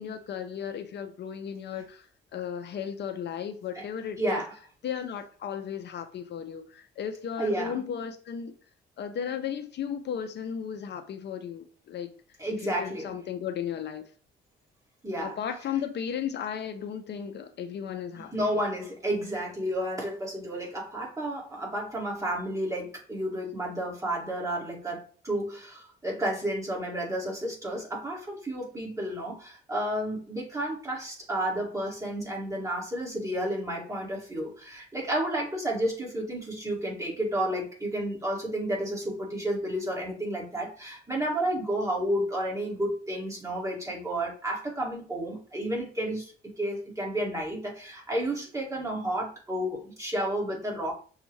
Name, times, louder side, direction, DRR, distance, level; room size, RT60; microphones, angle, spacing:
voice 1, 0.0-2.1 2.3-4.4 4.8-8.5 9.0-12.1 12.6-14.0 15.2-18.3, left 8 dB, 60° left, 7 dB, 0.6 m, -35 dB
voice 2, 4.2-4.5 7.4-7.8 12.4-13.1 15.0-15.3 18.2-50.9, right 1 dB, 15° right, -3 dB, 2.1 m, -31 dB
6.2 x 2.4 x 3.1 m, 0.41 s
cardioid pair, 90°, 20 cm